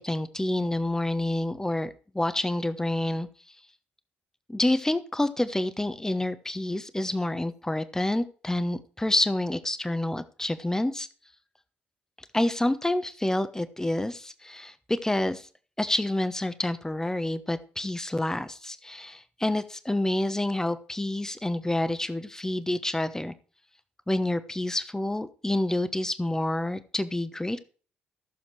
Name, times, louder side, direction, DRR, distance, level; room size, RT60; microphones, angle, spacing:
voice 1, 0.0-3.3 4.5-11.1 12.3-15.5 15.8-23.3 24.1-27.6, left 1 dB, 10° left, 13 dB, 1.1 m, -28 dB
14.5 x 7.1 x 4.7 m, 0.39 s
figure-of-eight pair, 45°, 6 cm